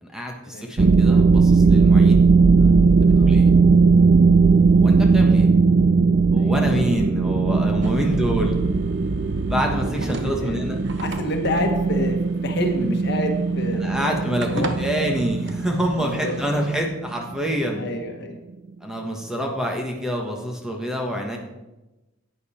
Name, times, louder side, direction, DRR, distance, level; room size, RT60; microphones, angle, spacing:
voice 1, 0.0-2.2 2.6-3.5 4.7-5.5 6.3-8.5 9.4-10.8 13.7-17.8 18.8-21.4, equal, 5° right, 1 dB, 1.3 m, -27 dB
sound 1, 0.8-17.4, right 4 dB, 45° right, 0.4 m, -18 dB
sound 2, 7.8-16.8, right 3 dB, 60° right, 0.9 m, -40 dB
voice 2, 10.2-10.6 11.0-12.2 12.4-14.7 16.0-16.4 17.8-18.4, left 1 dB, 55° left, 4 dB, 1.4 m, -28 dB
10.5 x 9.1 x 4.3 m, 1.0 s
head